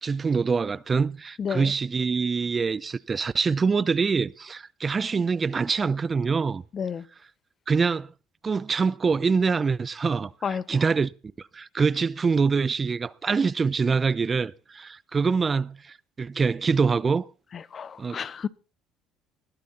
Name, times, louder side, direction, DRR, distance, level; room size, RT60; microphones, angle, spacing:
voice 1, 0.0-6.6 7.7-8.1 8.4-11.1 11.4-17.2 18.0-18.2, right 5 dB, 30° right, 0.6 m, -25 dB
voice 2, 1.4-1.7 6.7-7.0 10.4-10.8 17.5-18.5, left 7 dB, 45° left, 1.0 m, -31 dB
20.5 x 11.5 x 4.2 m
supercardioid pair, 75°, 0 cm